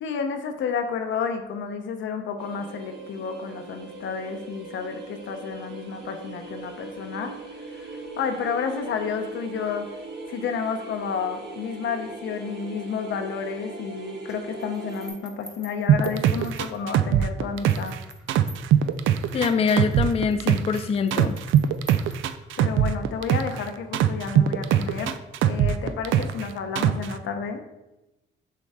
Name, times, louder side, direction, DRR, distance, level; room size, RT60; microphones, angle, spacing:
voice 1, 0.0-7.3 7.7-9.9 10.3-17.9 22.6-25.2 25.4-27.6, left 6 dB, 70° left, 6 dB, 0.8 m, -31 dB
sound 1, 2.4-15.1, right 3 dB, 55° right, 1.5 m, -40 dB
sound 2, 14.3-17.1 17.6-22.7, equal, 5° right, 1.1 m, -48 dB
sound 3, 15.9-18.0 18.3-20.8 21.1-23.6 23.9-26.4 26.8-27.1, right 10 dB, 80° right, 0.4 m, -21 dB
voice 2, 19.3-21.4, left 5 dB, 30° left, 8 dB, 0.4 m, -24 dB
6.8 x 4.7 x 3.6 m, 0.96 s
cardioid pair, 90°, 20 cm